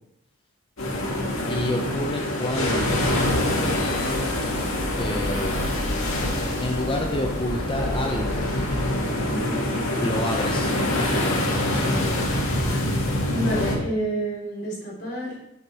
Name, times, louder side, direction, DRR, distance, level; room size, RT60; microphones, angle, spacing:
sound 1, 0.8-13.8, left 1 dB, 70° left, 1.9 m, -25 dB
voice 1, 1.5-3.1 5.0-5.7 6.6-8.5 10.0-12.2, left 1 dB, 25° left, 2 dB, 0.6 m, -29 dB
sound 2, 2.7-9.0, left 1 dB, 5° left, 2.8 m, -33 dB
voice 2, 9.3-9.7 13.3-15.4, right 1 dB, 50° left, -5 dB, 3.4 m, -29 dB
7.8 x 5.8 x 4.4 m, 0.85 s
head